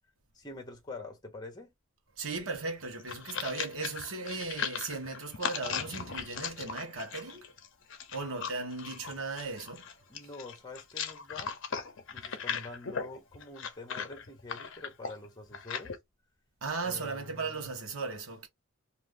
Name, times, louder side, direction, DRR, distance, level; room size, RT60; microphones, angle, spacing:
voice 1, 0.3-1.7 10.1-11.5 12.1-16.0 16.8-17.6, left 2 dB, 20° left, 0.9 m, -46 dB
voice 2, 2.2-7.5 8.1-9.9 16.6-18.5, right 3 dB, 75° right, 1.0 m, -37 dB
sound 1, 2.8-16.0, left 6 dB, 60° left, 0.6 m, -38 dB
2.5 x 2.5 x 3.5 m
head